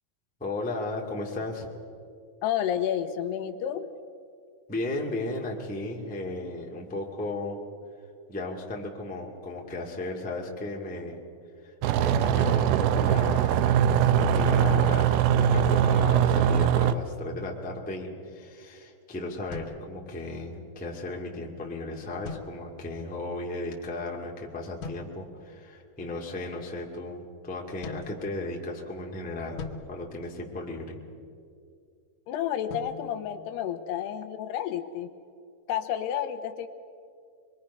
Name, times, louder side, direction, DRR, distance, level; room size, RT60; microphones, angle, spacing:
voice 1, 0.4-1.7 4.7-7.6 8.3-11.2 11.6-13.6 14.1-31.0, left 2 dB, 5° left, -1 dB, 0.9 m, -35 dB
voice 2, 2.4-3.9 32.3-35.1 35.7-36.7, left 10 dB, 85° left, 8 dB, 3.0 m, -30 dB
sound 1, 11.8-16.9, right 9 dB, 80° right, 2.5 m, -22 dB
sound 2, 19.5-20.6 22.2-23.1 24.8-25.5 27.8-28.9 29.6-31.0 32.7-34.2, left 4 dB, 65° left, 2.5 m, -43 dB
25.0 x 22.5 x 5.6 m, 2.3 s
omnidirectional pair, 4.7 m